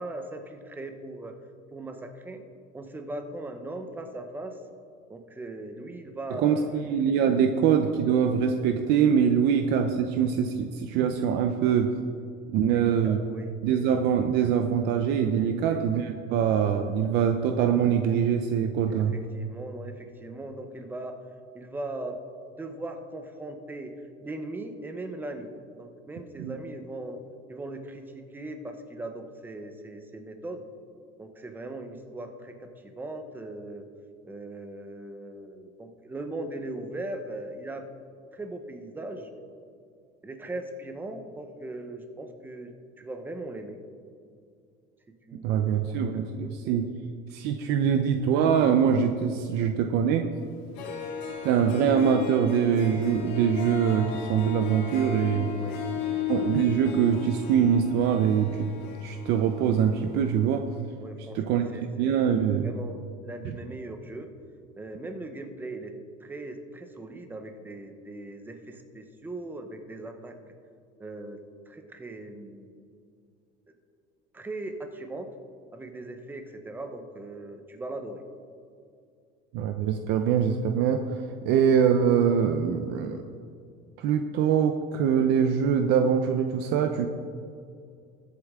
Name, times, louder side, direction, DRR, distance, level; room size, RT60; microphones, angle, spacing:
voice 1, 0.0-1.3 1.7-2.4 2.7-4.6 5.1-6.9 12.7-13.5 15.6-15.8 18.9-21.2 21.5-22.2 22.5-23.9 24.2-27.2 27.5-30.6 31.2-33.8 34.2-37.9 38.3-39.3 40.2-43.8 45.3-46.9 50.8-51.0 55.5-56.3 61.0-62.3 62.6-64.3 64.8-65.9 66.2-70.3 71.0-71.4 71.7-72.8 74.3-75.3 75.7-78.2 81.4-81.6, right 2 dB, 10° right, 6 dB, 0.9 m, -39 dB
voice 2, 6.4-11.9 12.5-13.2 13.6-19.2 26.4-26.6 45.4-46.9 47.3-50.3 51.4-55.5 56.3-58.7 59.0-60.7 61.3-61.7 62.0-62.7 63.4-63.5 79.5-81.0 81.4-83.2 84.0-87.1, right 8 dB, 60° right, 6 dB, 0.7 m, -23 dB
Harp, 50.5-50.6 50.8-60.3, left 7 dB, 80° left, 2.5 m, -35 dB
21.0 x 8.2 x 3.7 m, 2.3 s
cardioid pair, 165°, 19 cm